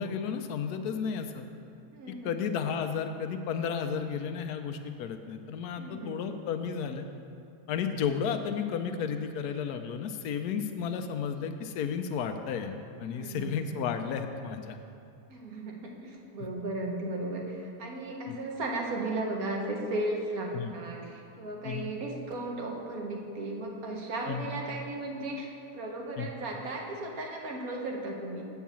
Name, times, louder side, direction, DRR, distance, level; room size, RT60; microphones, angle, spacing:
voice 1, 0.0-1.5 2.2-7.1 7.7-14.8 18.3-18.4 20.5-20.7 21.6-21.9 24.3-24.5 26.2-26.3, left 7 dB, 90° left, 7 dB, 1.1 m, -33 dB
voice 2, 1.9-2.3 5.8-6.2 13.1-13.5 15.3-28.4, right 2 dB, 70° right, 0 dB, 1.5 m, -35 dB
8.1 x 4.7 x 7.3 m, 2.5 s
omnidirectional pair, 1.6 m